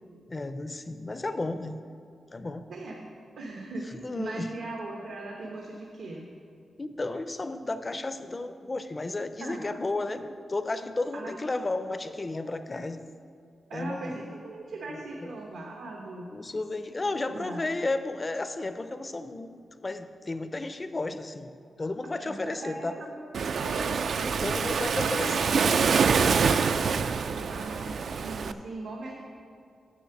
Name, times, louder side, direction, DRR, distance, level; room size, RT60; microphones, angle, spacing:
voice 1, 0.3-1.8 2.3-2.7 4.0-4.5 6.8-13.0 13.7-14.2 15.2-15.3 16.3-21.5 21.8-23.0 24.4-25.5, left 2 dB, 25° left, 10 dB, 0.4 m, -33 dB
voice 2, 2.7-3.0 3.4-6.3 9.4-9.6 11.1-11.5 13.7-16.3 17.2-17.6 22.2-23.9 24.2-24.5 24.9-29.2, right 2 dB, 85° right, -1 dB, 1.1 m, -39 dB
Waves surf, 23.3-28.5, right 5 dB, 65° right, 0.3 m, -25 dB
7.2 x 6.7 x 7.0 m, 2.3 s
wide cardioid pair, 145°, 0 cm